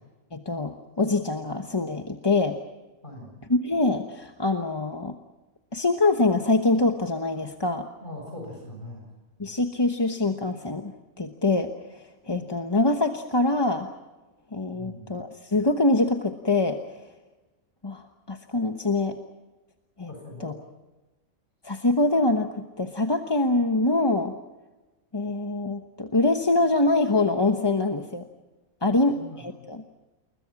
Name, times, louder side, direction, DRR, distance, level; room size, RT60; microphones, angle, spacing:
voice 1, 0.3-2.6 3.5-5.2 5.7-7.9 9.4-10.9 11.2-13.9 14.5-17.0 17.8-19.2 20.0-20.1 20.4-20.5 21.6-24.3 25.1-28.2 28.8-29.8, left 2 dB, 20° left, 5 dB, 1.0 m, -24 dB
voice 2, 3.0-3.3 8.0-9.0 14.7-15.1 20.1-20.5 28.8-29.5, left 1 dB, 35° left, 0 dB, 7.9 m, -41 dB
28.5 x 21.5 x 6.0 m, 1.1 s
omnidirectional pair, 1.5 m